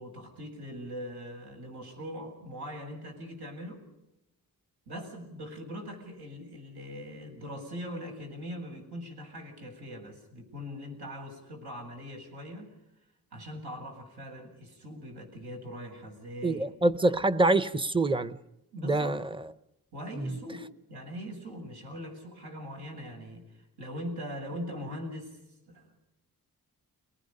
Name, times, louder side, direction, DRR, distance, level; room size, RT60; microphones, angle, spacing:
voice 1, 0.0-3.8 4.9-12.7 13.3-16.7 18.7-19.2 19.9-25.4 25.7-26.0, equal, 80° right, 7.9 m, -41 dB
voice 2, 16.4-18.4 18.8-19.2 20.2-20.4, right 2 dB, 15° right, 0.8 m, -25 dB
30.0 x 19.5 x 5.4 m
wide cardioid pair, 140°, 38 cm